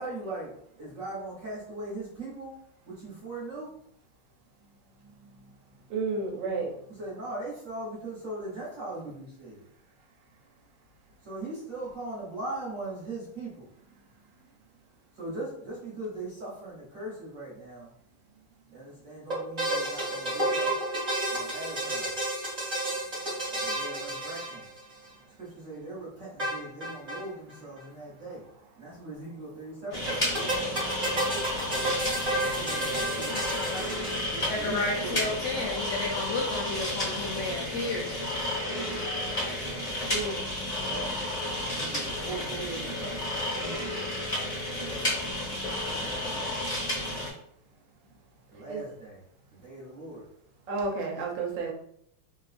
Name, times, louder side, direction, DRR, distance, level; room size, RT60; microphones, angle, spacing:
voice 1, 0.0-2.6 2.9-3.7 6.9-9.6 11.2-13.7 15.1-17.9 18.7-20.7 21.3-22.2 23.5-24.7 25.4-28.4 28.8-30.5 31.0-32.0 32.5-33.4 34.1-35.9 38.8-39.6 40.8-41.3 41.5-44.6 46.0-46.6 48.5-50.3, right 2 dB, 45° right, -7 dB, 1.2 m, -40 dB
voice 2, 5.9-6.7 40.1-40.4 48.7-48.8 50.7-51.7, right 3 dB, 70° right, 1 dB, 1.2 m, -31 dB
sound 1, 19.3-25.1 26.4-27.2 27.5-27.6 27.8-27.9 30.1-34.6, right 1 dB, 25° right, 1.0 m, -31 dB
sound 2, 29.9-47.3, left 1 dB, 30° left, 0.9 m, -32 dB
voice 3, 34.5-38.1, left 3 dB, 75° left, -1 dB, 1.0 m, -32 dB
3.6 x 2.3 x 2.4 m, 0.68 s
omnidirectional pair, 2.3 m